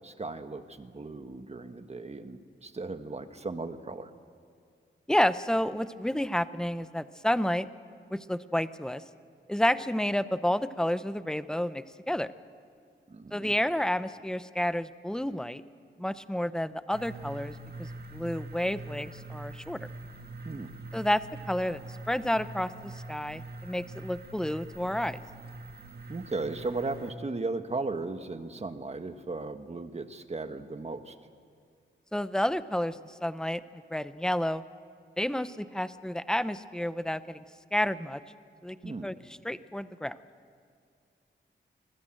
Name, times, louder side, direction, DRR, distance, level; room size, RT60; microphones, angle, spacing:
voice 1, 0.0-4.1 13.1-13.5 20.4-20.7 26.1-31.1 38.8-39.1, right 3 dB, 35° right, 8 dB, 1.4 m, -36 dB
voice 2, 5.1-7.7 8.1-9.0 9.5-12.3 13.3-15.6 16.0-19.9 20.9-21.8 22.1-25.2 32.1-34.6 35.2-37.4 37.7-38.2 38.6-39.1 39.4-40.2, left 1 dB, 5° left, 13 dB, 0.7 m, -30 dB
sound 1, 16.9-27.1, right 2 dB, 55° right, 1.9 m, -44 dB
26.5 x 20.5 x 7.8 m, 2.4 s
wide cardioid pair, 115°, 19 cm